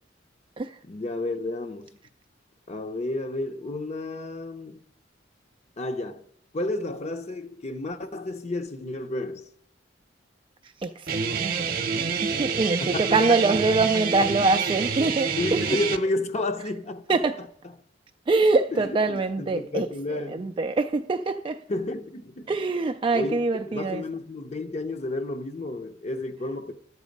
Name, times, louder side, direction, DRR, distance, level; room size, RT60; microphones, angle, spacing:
voice 1, 0.8-1.9 2.7-4.8 5.8-6.3 6.5-9.5 12.8-13.6 15.4-17.2 18.7-20.5 21.7-22.5 23.1-23.4 23.7-26.7, left 2 dB, 35° left, 0.7 m, -31 dB
voice 2, 10.6-11.8 12.2-15.8 17.1-17.4 18.3-19.9 20.2-21.6 22.5-24.0, right 3 dB, 25° right, 0.3 m, -24 dB
Guitar, 11.1-16.0, right 5 dB, 50° right, 0.8 m, -27 dB
11.5 x 8.1 x 5.2 m
head